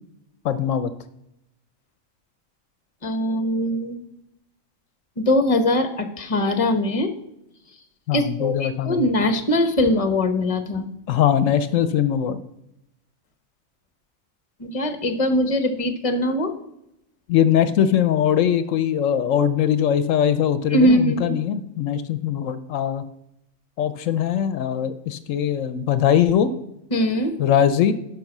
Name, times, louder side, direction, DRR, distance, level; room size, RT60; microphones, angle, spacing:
voice 1, 0.4-0.9 8.1-9.1 11.1-12.4 17.3-23.0 23.8-26.5 27.4-27.9, left 9 dB, 75° left, 13 dB, 1.0 m, -21 dB
voice 2, 3.0-4.0 5.2-7.1 8.1-10.9 14.6-16.5 20.7-21.4 26.9-27.4, left 1 dB, 30° left, 9 dB, 1.0 m, -21 dB
11.5 x 5.2 x 5.9 m, 0.82 s
omnidirectional pair, 1.3 m